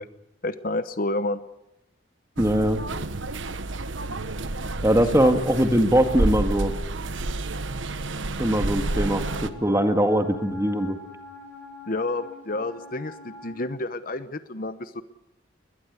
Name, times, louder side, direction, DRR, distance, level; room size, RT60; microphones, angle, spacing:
voice 1, 0.4-1.4 5.2-5.3 11.9-15.0, left 2 dB, 45° left, 12 dB, 0.9 m, -29 dB
voice 2, 2.4-2.8 4.8-6.7 8.4-11.0, equal, 15° right, 7 dB, 2.0 m, -21 dB
sound 1, 2.4-9.5, right 2 dB, 75° right, 1.3 m, -29 dB
Wind instrument woodwind instrument, 8.9-13.7, left 2 dB, 10° left, 6.8 m, -44 dB
21.5 x 21.0 x 8.2 m, 0.86 s
head